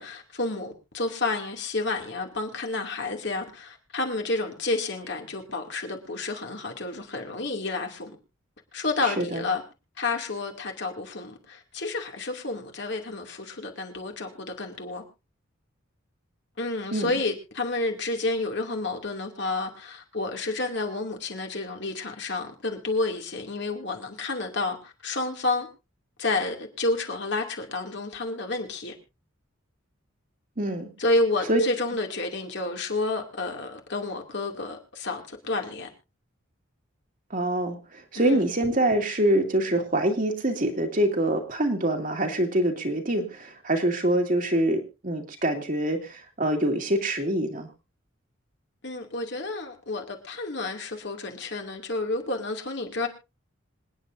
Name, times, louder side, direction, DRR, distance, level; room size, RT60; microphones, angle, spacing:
voice 1, 0.0-8.2 8.7-9.6 10.0-15.0 16.6-25.7 26.2-28.9 31.0-35.9 38.1-38.4 48.8-53.1, left 2 dB, 60° left, 2.5 m, -30 dB
voice 2, 9.0-9.4 16.9-17.1 30.6-30.9 31.5-31.6 37.3-47.7, right 1 dB, 40° right, 2.2 m, -25 dB
26.5 x 9.6 x 2.6 m
head